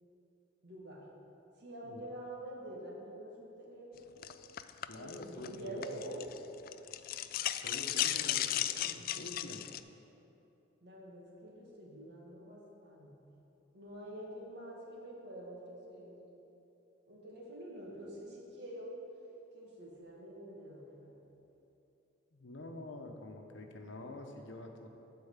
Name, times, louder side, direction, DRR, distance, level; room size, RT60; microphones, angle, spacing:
voice 1, 0.6-1.0 1.6-4.2 5.0-6.3 10.8-13.1 13.7-16.3 17.1-18.9 19.5-21.3, right 1 dB, 60° right, -4 dB, 2.2 m, -47 dB
sound 1, 4.2-6.4 6.7-9.8, left 12 dB, 50° left, 0.3 m, -35 dB
voice 2, 4.9-6.0 7.6-9.7 14.0-14.1 22.3-24.9, left 1 dB, 75° left, 3 dB, 1.0 m, -47 dB
12.0 x 4.6 x 7.3 m, 2.9 s
head